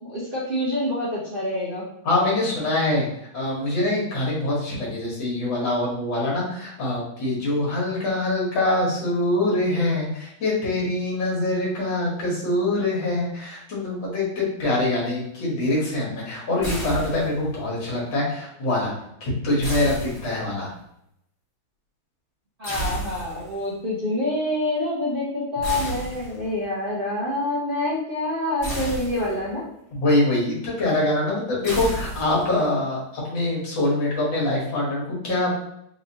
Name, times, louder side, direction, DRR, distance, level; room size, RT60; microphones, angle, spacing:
voice 1, 0.0-1.8 22.6-29.6 32.5-32.8, left 1 dB, 55° right, -7 dB, 0.6 m, -27 dB
voice 2, 2.1-3.1 3.3-18.9 19.2-20.7 29.9-35.5, left 2 dB, 80° left, -5 dB, 2.1 m, -24 dB
sound 1, 16.6-17.6 19.6-20.7 22.6-23.6 25.6-26.6 28.6-29.6 31.6-32.6, right 2 dB, 20° left, 1.0 m, -32 dB
4.4 x 2.8 x 2.7 m, 0.75 s
omnidirectional pair, 2.1 m